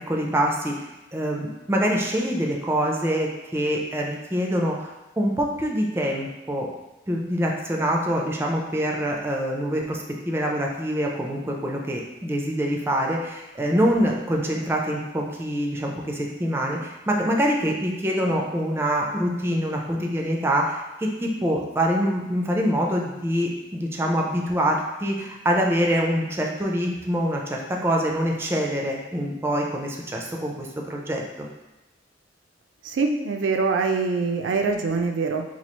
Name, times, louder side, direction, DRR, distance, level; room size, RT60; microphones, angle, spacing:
voice 1, 0.1-6.7 7.1-31.5, equal, 15° right, 0 dB, 0.4 m, -25 dB
voice 2, 32.8-35.4, right 4 dB, 80° right, 4 dB, 0.4 m, -24 dB
2.9 x 2.4 x 4.2 m, 1.0 s
head